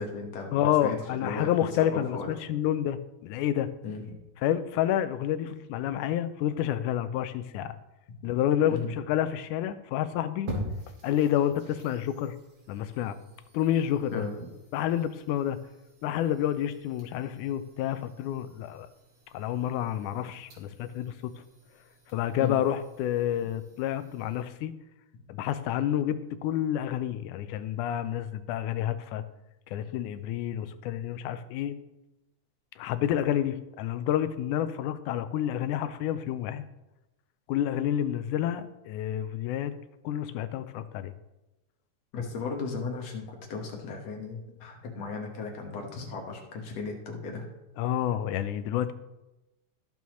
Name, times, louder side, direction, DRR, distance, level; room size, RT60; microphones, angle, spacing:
voice 1, 0.0-1.5 1.8-2.3 3.8-4.0 8.7-8.9 14.1-14.5 22.4-22.6 42.1-47.4, left 4 dB, 60° left, 1 dB, 2.5 m, -36 dB
voice 2, 0.5-3.7 4.4-7.7 8.2-10.5 11.0-12.4 12.7-13.2 13.5-14.3 14.7-15.6 16.0-18.9 19.3-21.3 22.1-24.7 25.3-29.2 29.7-31.7 32.8-36.6 37.5-39.7 40.0-41.1 47.8-48.9, left 11 dB, 85° left, 11 dB, 2.1 m, -29 dB
sound 1, 10.5-24.5, equal, 60° right, 3.3 m, -45 dB
14.0 x 7.0 x 3.1 m, 0.98 s
omnidirectional pair, 3.5 m